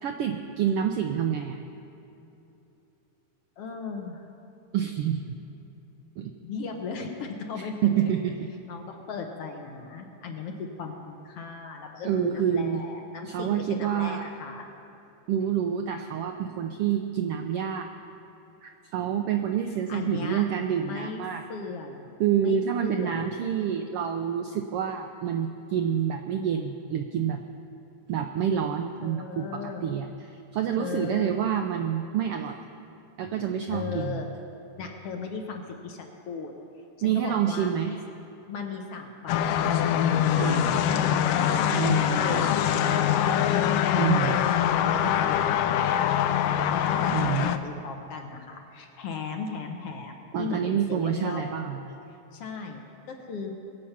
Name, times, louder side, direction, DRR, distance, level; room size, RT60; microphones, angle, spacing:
voice 1, 0.0-1.6 4.7-5.2 6.2-6.3 7.8-8.5 12.0-12.8 13.3-14.2 15.3-17.9 18.6-21.4 22.2-27.4 28.1-32.6 33.2-34.2 37.0-38.0 40.4-40.8 41.7-42.5 44.0-44.4 47.1-47.6 50.3-51.8, right 8 dB, 85° right, 5 dB, 1.3 m, -28 dB
voice 2, 3.6-4.3 6.4-8.0 8.7-14.7 19.9-20.5 20.8-21.2 21.5-22.1 22.4-23.5 29.0-29.9 30.8-31.4 33.7-34.3 34.8-36.5 37.0-38.0 38.5-40.0 40.6-43.5 43.9-46.0 46.7-51.6 52.3-52.8 53.1-53.5, left 5 dB, 60° left, 2 dB, 1.9 m, -37 dB
sound 1, 39.3-47.6, left 10 dB, 85° left, 1.3 m, -24 dB
21.5 x 7.7 x 5.8 m, 2.9 s
omnidirectional pair, 3.3 m